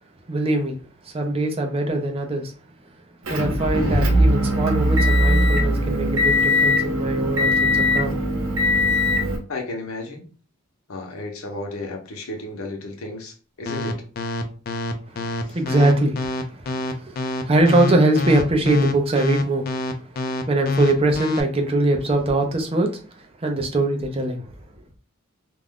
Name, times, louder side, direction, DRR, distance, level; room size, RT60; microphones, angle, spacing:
voice 1, 0.3-0.8 1.1-2.5 3.3-8.9 15.1-19.7 20.5-24.4, right 2 dB, 25° right, 0.5 m, -22 dB
Motor vehicle (road) / Engine, 3.3-9.4, left 1 dB, 80° right, 0.7 m, -20 dB
voice 2, 9.5-10.3 10.9-14.0 15.4-15.6, left 2 dB, 85° left, 0.7 m, -33 dB
sound 1, 13.7-21.4, left 2 dB, 45° left, 0.4 m, -25 dB
2.4 x 2.2 x 3.4 m
head